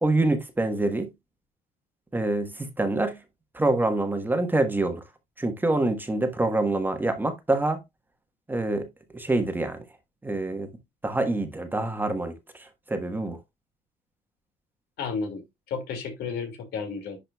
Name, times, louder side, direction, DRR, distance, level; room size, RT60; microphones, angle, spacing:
voice 1, 0.0-1.1 2.1-3.2 3.5-5.0 5.4-7.8 8.5-8.9 9.1-9.8 10.2-10.7 11.0-12.3 12.6-13.4, right 2 dB, 10° right, 1.3 m, -26 dB
voice 2, 15.0-17.2, left 5 dB, 80° left, 2.2 m, -33 dB
10.5 x 5.0 x 2.3 m
cardioid pair, 110°, 17 cm